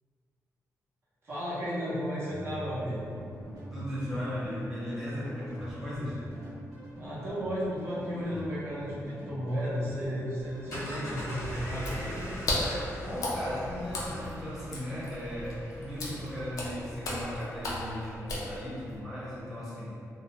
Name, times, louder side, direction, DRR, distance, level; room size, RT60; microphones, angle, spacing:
voice 1, 1.2-3.0 7.0-12.2, equal, 45° right, -9 dB, 0.7 m, -34 dB
sound 1, 2.3-12.3, equal, 85° right, 0.7 m, -44 dB
voice 2, 3.7-6.3 13.0-19.9, equal, 5° right, -10 dB, 0.7 m, -37 dB
sound 2, 10.4-16.8, equal, 90° left, 0.9 m, -41 dB
Water / Splash splatter, 11.7-19.0, left 1 dB, 70° left, 0.4 m, -36 dB
2.3 x 2.1 x 2.7 m, 2.5 s
wide cardioid pair, 125°, 6 cm